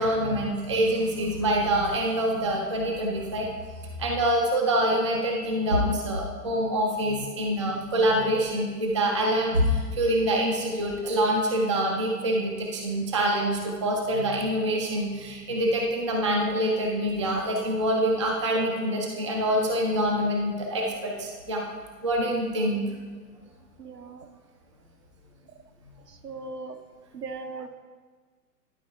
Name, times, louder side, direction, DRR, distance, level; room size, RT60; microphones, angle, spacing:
voice 1, 0.0-3.5 4.0-21.6 22.0-22.9, right 1 dB, 20° right, -1 dB, 0.4 m, -25 dB
voice 2, 23.8-24.3 26.2-26.8 27.1-27.7, right 3 dB, 75° right, 7 dB, 0.8 m, -38 dB
11.0 x 4.3 x 4.5 m, 1.5 s
figure-of-eight pair, 115°, 48 cm